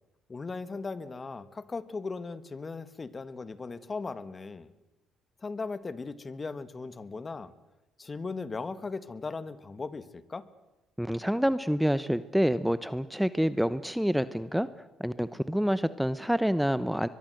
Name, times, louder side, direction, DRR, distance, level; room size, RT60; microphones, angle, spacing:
voice 1, 0.3-4.7 5.4-7.5 8.0-10.4, left 4 dB, 30° left, 14 dB, 1.7 m, -38 dB
voice 2, 11.0-14.7 15.0-17.1, equal, ahead, 14 dB, 0.9 m, -27 dB
23.0 x 23.0 x 7.9 m, 1.0 s
supercardioid pair, 75°, 0 cm